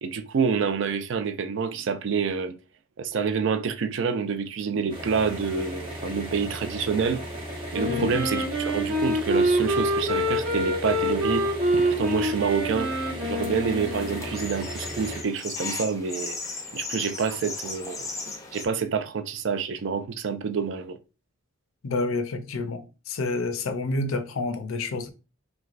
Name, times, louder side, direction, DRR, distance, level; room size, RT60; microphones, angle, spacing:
voice 1, 0.0-2.6 3.0-7.2 7.7-11.5 11.7-12.9 13.2-16.4 16.7-18.1 18.5-21.0, right 6 dB, 65° right, 0.4 m, -27 dB
sound 1, 4.9-15.2, equal, 25° right, 0.9 m, -36 dB
Wind instrument woodwind instrument, 7.7-14.4, equal, 90° right, 1.0 m, -26 dB
sound 2, 13.2-18.7, left 4 dB, 15° left, 0.4 m, -37 dB
voice 2, 21.8-25.1, left 3 dB, 85° left, 0.5 m, -29 dB
3.3 x 3.2 x 2.4 m
head